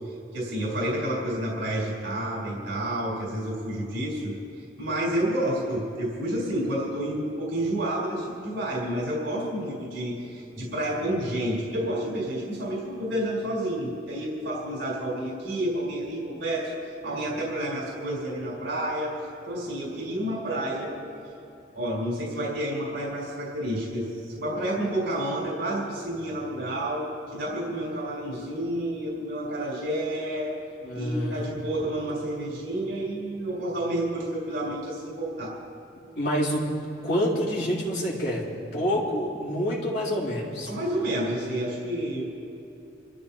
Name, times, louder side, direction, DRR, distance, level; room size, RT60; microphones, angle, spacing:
voice 1, 0.3-4.4 4.8-19.2 19.5-20.9 21.7-30.5 30.9-35.6 40.7-42.2, right 1 dB, 80° right, -4 dB, 4.2 m, -30 dB
voice 2, 30.8-31.4 36.2-36.7 37.0-40.7, equal, 60° left, -6 dB, 3.7 m, -27 dB
28.0 x 14.0 x 2.9 m, 2.8 s
head